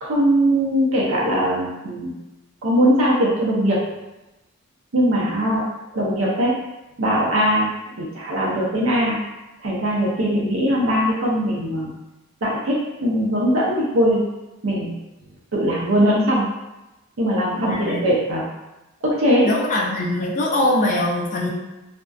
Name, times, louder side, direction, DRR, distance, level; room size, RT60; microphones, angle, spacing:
voice 1, 0.0-2.2 2.6-3.8 4.9-5.6 5.9-6.6 7.0-9.2 9.6-11.9 12.4-14.2 14.6-14.9 15.5-16.5 17.2-18.5 19.0-19.5, equal, 80° right, -5 dB, 0.6 m, -20 dB
voice 2, 17.6-18.0 19.4-21.5, left 1 dB, 35° left, -2 dB, 0.4 m, -22 dB
2.5 x 2.1 x 2.3 m, 1.0 s
head